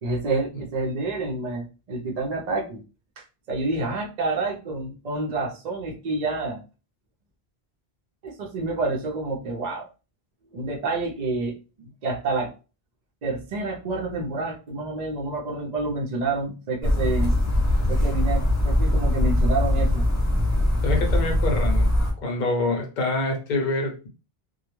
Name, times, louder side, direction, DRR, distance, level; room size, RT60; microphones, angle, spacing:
voice 1, 0.0-2.8 3.2-6.6 8.2-9.9 10.5-12.5 13.2-17.4 17.9-20.1, right 2 dB, 50° right, 0 dB, 0.6 m, -28 dB
sound 1, 16.8-22.1, left 1 dB, 30° left, 0.3 m, -21 dB
voice 2, 20.8-21.9 22.2-24.1, left 2 dB, 50° left, 2 dB, 0.8 m, -26 dB
2.2 x 2.1 x 3.0 m, 0.32 s
omnidirectional pair, 1.1 m